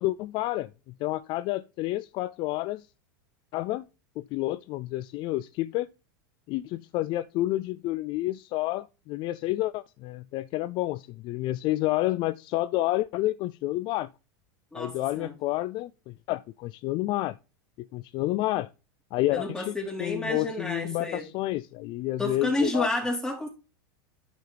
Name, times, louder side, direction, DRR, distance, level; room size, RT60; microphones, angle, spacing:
voice 1, 0.0-2.9 3.5-3.9 4.2-5.9 6.5-14.1 14.8-17.4 17.8-18.7 19.1-22.9, left 17 dB, 45° left, 0.4 m, -29 dB
voice 2, 14.7-15.3 19.3-21.3 22.2-23.5, left 1 dB, 5° left, 3.6 m, -30 dB
12.5 x 5.7 x 3.4 m
supercardioid pair, 120°, 12 cm